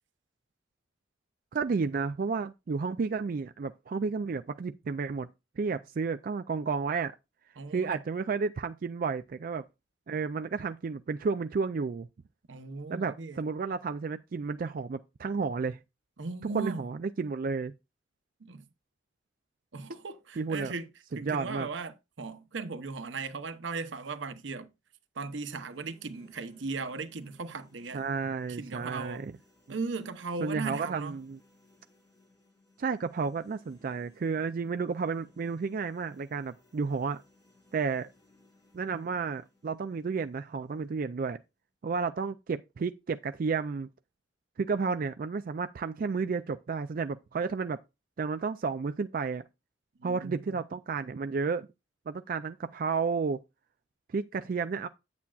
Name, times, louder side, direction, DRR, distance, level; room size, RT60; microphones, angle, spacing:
voice 1, 1.5-5.3 5.6-7.2 7.7-9.6 10.1-12.1 12.9-15.8 16.5-17.7 20.4-20.7 21.3-21.7 27.9-29.3 30.4-31.4 32.8-37.2 37.7-38.1 38.7-41.4 41.8-43.9 44.6-47.8 48.2-49.4 50.0-51.7 52.1-53.4 54.1-54.9, right 5 dB, 50° right, 0.4 m, -32 dB
voice 2, 7.6-8.0 12.5-13.4 16.2-16.9 18.4-18.6 19.7-20.9 21.2-24.7 25.1-28.0 28.5-29.3 29.7-31.1 50.0-50.6, right 4 dB, 85° right, 0.8 m, -37 dB
sound 1, 25.3-41.3, left 1 dB, 20° left, 2.7 m, -64 dB
8.5 x 8.3 x 2.4 m
head